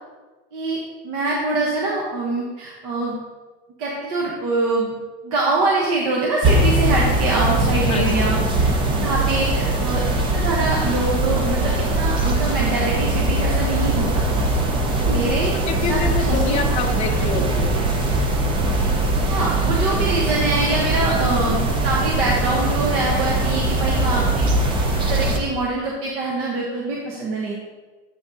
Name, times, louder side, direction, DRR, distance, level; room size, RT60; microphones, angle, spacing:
voice 1, 1.0-3.2 3.8-4.9 5.2-8.7 9.0-10.0 10.3-14.2 14.9-16.8 19.3-24.4 25.0-27.5, right 2 dB, 50° right, -3 dB, 1.0 m, -24 dB
sound 1, 6.4-25.4, right 2 dB, 15° right, 0.3 m, -21 dB
voice 2, 7.9-8.6 15.7-17.8, left 5 dB, 20° left, 1 dB, 0.6 m, -27 dB
7.7 x 5.9 x 2.7 m, 1.3 s
supercardioid pair, 155°, 34 cm